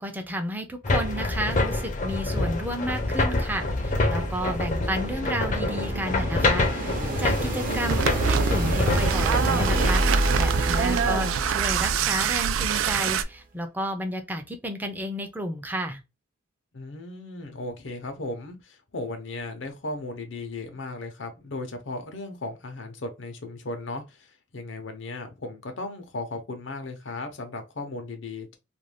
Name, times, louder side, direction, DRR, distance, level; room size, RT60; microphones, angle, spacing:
voice 1, 0.0-16.0, equal, 10° right, 0.5 m, -32 dB
sound 1, 0.8-10.0, left 2 dB, 40° left, 0.6 m, -26 dB
sound 2, 4.3-13.2, right 1 dB, 45° right, 0.7 m, -28 dB
sound 3, 7.9-13.2, right 8 dB, 85° right, 0.3 m, -26 dB
voice 2, 10.6-11.3 16.7-28.6, left 2 dB, 75° left, 0.8 m, -36 dB
2.5 x 2.2 x 3.2 m
head